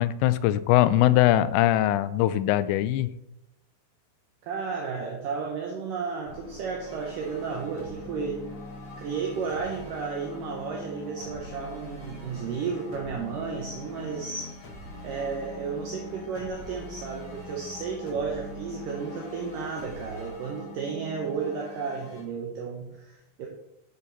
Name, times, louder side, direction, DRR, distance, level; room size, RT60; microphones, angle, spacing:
voice 1, 0.0-3.1, left 13 dB, 85° left, 14 dB, 2.7 m, -21 dB
voice 2, 4.4-8.5 9.0-14.6 15.0-23.5, right 5 dB, 75° right, 0 dB, 2.1 m, -33 dB
sound 1, 6.2-20.3, equal, 50° left, 2.1 m, -44 dB
sound 2, 6.8-22.2, left 3 dB, 15° left, 2.0 m, -46 dB
9.7 x 7.2 x 4.0 m, 0.86 s
omnidirectional pair, 5.2 m